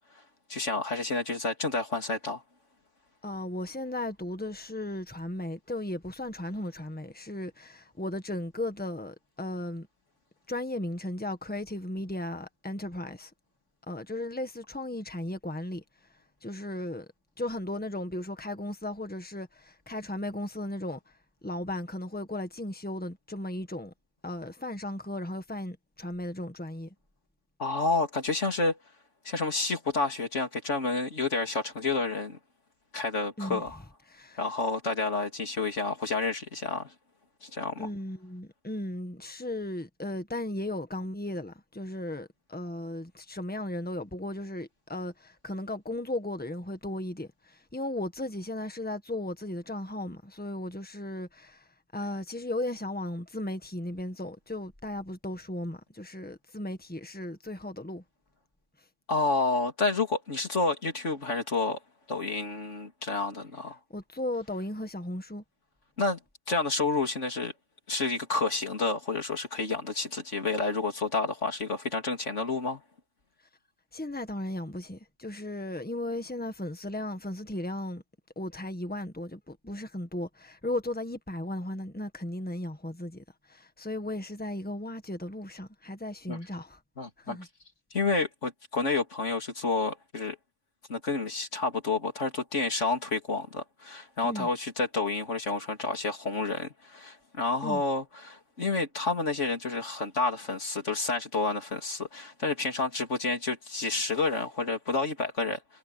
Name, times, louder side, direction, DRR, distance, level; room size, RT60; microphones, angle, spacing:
voice 1, 0.5-2.4 27.6-28.8 29.3-32.4 32.9-33.8 34.4-36.9 37.4-37.9 59.1-61.8 62.1-63.8 66.0-66.2 66.5-67.5 67.9-72.8 86.3-86.4 87.0-87.4 87.9-90.4 90.9-105.6, left 3 dB, 90° left, 3.6 m, -29 dB
voice 2, 3.2-9.9 10.5-13.3 13.9-15.8 16.4-17.0 17.4-21.0 21.4-23.9 24.2-26.9 33.4-33.6 34.1-34.4 37.8-51.7 51.9-58.0 63.9-65.4 73.9-78.0 78.3-86.8 87.2-87.5 94.2-94.5 97.6-97.8, left 1 dB, 10° left, 1.7 m, -36 dB
omnidirectional pair, 1.2 m